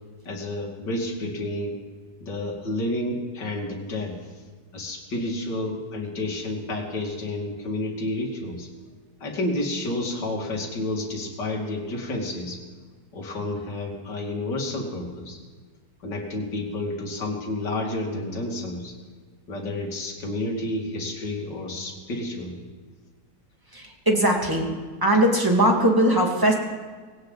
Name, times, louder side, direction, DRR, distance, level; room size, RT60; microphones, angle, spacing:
voice 1, 0.3-1.8 2.2-4.1 4.7-8.7 9.2-12.6 13.1-15.4 16.0-18.9 19.5-22.6, left 1 dB, 70° left, -1 dB, 3.0 m, -30 dB
voice 2, 23.7-24.7 25.0-26.5, right 1 dB, 10° right, 0 dB, 2.2 m, -20 dB
19.5 x 17.5 x 4.1 m, 1.5 s
omnidirectional pair, 2.0 m